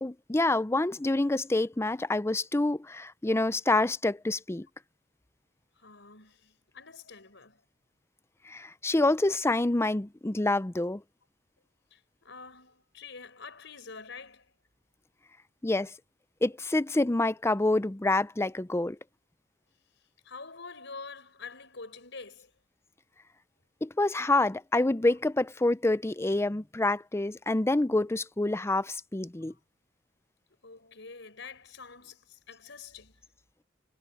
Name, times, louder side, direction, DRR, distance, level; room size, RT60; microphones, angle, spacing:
voice 1, 0.0-4.7 8.5-11.0 15.6-15.9 16.4-19.0 23.8-29.5, left 2 dB, 15° left, 0.5 m, -27 dB
voice 2, 5.7-7.6 11.9-14.5 20.2-22.5 29.5-29.6 30.6-33.2, left 4 dB, 65° left, 6.7 m, -46 dB
head